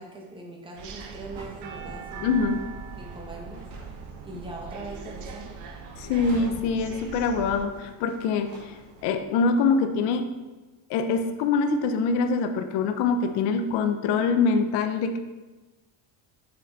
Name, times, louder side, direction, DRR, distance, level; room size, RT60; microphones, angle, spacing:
voice 1, 0.0-2.3 3.0-3.6 4.2-5.5, right 2 dB, 10° right, -1 dB, 1.2 m, -41 dB
sound 1, 0.8-7.7, right 6 dB, 40° right, 0.8 m, -40 dB
sound 2, 1.3-9.3, right 2 dB, 75° right, 2.3 m, -49 dB
voice 2, 2.2-2.6 6.0-10.3 10.9-15.2, left 4 dB, 65° left, 7 dB, 0.8 m, -24 dB
6.6 x 6.3 x 4.0 m, 1.2 s
cardioid pair, 160°, 44 cm